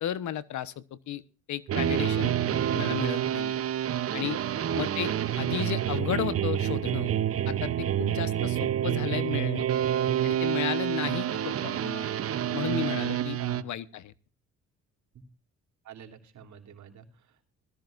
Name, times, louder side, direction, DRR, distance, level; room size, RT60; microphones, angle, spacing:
voice 1, 0.0-1.2 1.5-2.3 2.7-3.6 4.1-4.4 4.7-7.1 7.5-9.6 10.2-12.1 12.5-13.4 13.6-14.1, left 11 dB, 70° left, 17 dB, 1.1 m, -33 dB
sound 1, 1.7-13.6, right 10 dB, 50° right, 0.8 m, -28 dB
voice 2, 13.4-13.7 15.8-17.4, right 7 dB, 70° right, 3 dB, 3.4 m, -46 dB
20.0 x 14.5 x 2.5 m, 0.33 s
cardioid pair, 90°, 30 cm